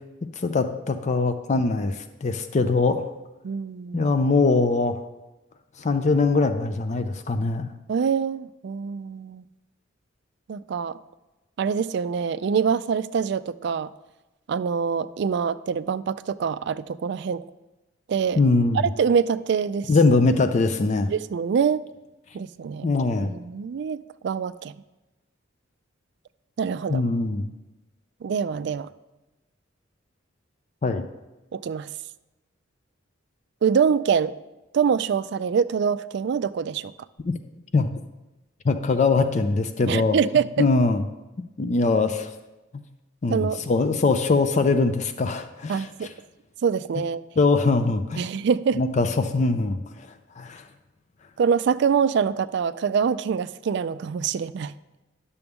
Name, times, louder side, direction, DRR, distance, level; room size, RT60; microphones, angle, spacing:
voice 1, 0.4-3.1 3.9-5.0 5.8-7.7 18.4-18.8 19.9-21.1 22.8-23.3 26.9-27.5 30.8-31.1 37.3-37.4 37.7-37.9 38.6-40.2 40.6-41.0 41.4-42.3 43.2-45.9 47.4-48.3 48.7-50.1 50.4-50.6, left 3 dB, 40° left, 9 dB, 0.4 m, -22 dB
voice 2, 3.4-4.1 7.9-9.4 10.5-11.0 11.6-13.9 14.5-17.4 18.1-18.4 19.0-19.9 21.1-21.9 22.3-22.9 23.2-24.7 26.6-27.0 28.2-28.9 31.5-31.9 33.6-34.3 34.7-36.9 39.8-40.7 43.3-43.6 45.7-46.1 46.6-47.2 48.2-48.8 51.4-54.7, right 6 dB, 60° right, 15 dB, 0.3 m, -25 dB
11.0 x 6.9 x 3.6 m, 1.1 s
head